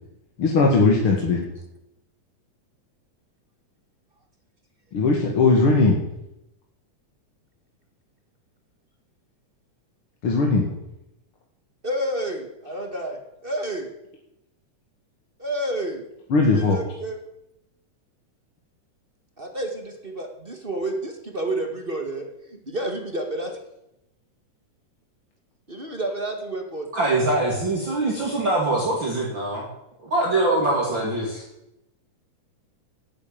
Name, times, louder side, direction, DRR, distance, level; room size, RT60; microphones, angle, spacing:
voice 1, 0.4-1.4 4.9-6.0 10.2-10.6 16.3-16.8, left 3 dB, 50° left, -1 dB, 2.5 m, -18 dB
voice 2, 11.8-13.9 15.4-16.0 16.5-17.2 19.4-23.5 25.7-26.9, right 1 dB, 25° right, 3 dB, 1.4 m, -30 dB
voice 3, 26.9-29.7 30.0-31.4, right 2 dB, 40° right, -3 dB, 3.0 m, -23 dB
13.0 x 9.5 x 9.1 m, 0.88 s
omnidirectional pair, 3.5 m